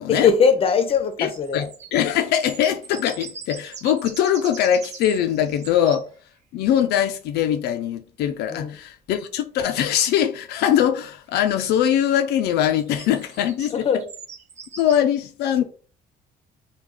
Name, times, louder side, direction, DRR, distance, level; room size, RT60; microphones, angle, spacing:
voice 1, 0.1-1.7 8.5-8.8 13.7-14.0, left 6 dB, 35° left, 0.6 m, -20 dB
sound 1, 1.1-6.0 8.8-8.9 11.5-11.6 12.8-15.0, right 6 dB, 40° right, 0.6 m, -41 dB
voice 2, 1.2-1.6 1.9-6.1 6.5-13.9 14.8-15.6, left 10 dB, 75° left, 0.4 m, -22 dB
3.1 x 2.2 x 3.7 m
cardioid pair, 110°, 17 cm